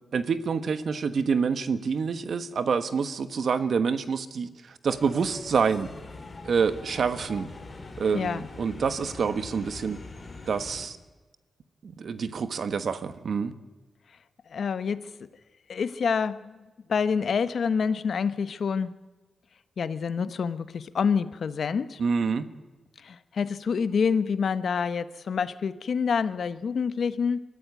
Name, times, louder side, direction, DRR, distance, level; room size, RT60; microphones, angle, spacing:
voice 1, 0.1-5.9 6.4-7.5 8.0-10.0 10.5-11.0 11.8-13.5 22.0-22.5, right 5 dB, 65° right, 11 dB, 1.4 m, -27 dB
sound 1, 4.9-10.9, left 3 dB, 35° left, 3.7 m, -43 dB
voice 2, 8.1-8.5 14.5-15.1 15.7-16.6 16.9-18.9 19.8-22.0 23.0-27.4, left 6 dB, 70° left, 13 dB, 1.1 m, -27 dB
22.5 x 14.0 x 9.5 m, 1.2 s
cardioid pair, 80°, 0 cm